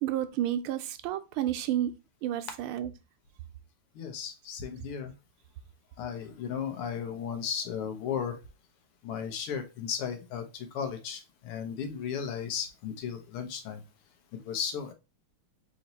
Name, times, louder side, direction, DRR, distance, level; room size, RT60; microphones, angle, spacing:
voice 1, 0.0-1.9 2.2-2.9, right 12 dB, 80° right, 1.4 m, -30 dB
voice 2, 4.0-5.1 6.0-8.4 9.0-13.8 14.5-14.9, left 7 dB, 85° left, 1.8 m, -35 dB
4.2 x 3.0 x 4.0 m
omnidirectional pair, 2.4 m